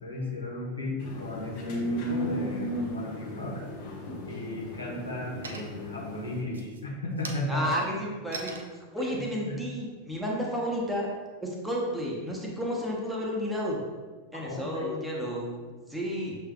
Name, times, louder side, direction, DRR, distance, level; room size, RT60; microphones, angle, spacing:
voice 1, 0.0-3.6 4.2-7.8 9.0-9.6 14.4-15.0, left 1 dB, 75° left, -3 dB, 1.1 m, -35 dB
sound 1, 1.0-6.4, equal, 50° left, 1.0 m, -35 dB
sound 2, 5.4-6.0 6.4-10.9, right 3 dB, 70° right, 0.5 m, -44 dB
voice 2, 7.5-8.6 8.9-11.1 11.4-13.8 14.3-15.6 15.9-16.4, equal, 5° right, -3 dB, 0.9 m, -31 dB
6.5 x 3.3 x 2.3 m, 1.4 s
figure-of-eight pair, 90°, 0 cm